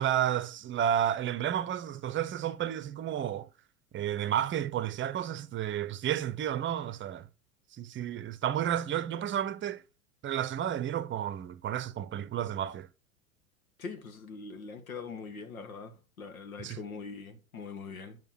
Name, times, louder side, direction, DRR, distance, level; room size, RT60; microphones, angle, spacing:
voice 1, 0.0-3.5 3.9-7.3 7.7-9.8 10.2-12.9 16.6-16.8, right 10 dB, 30° right, 0.8 m, -31 dB
voice 2, 13.8-18.2, left 5 dB, 85° left, 1.7 m, -42 dB
9.2 x 6.0 x 4.4 m
hypercardioid pair, 95°, 41 cm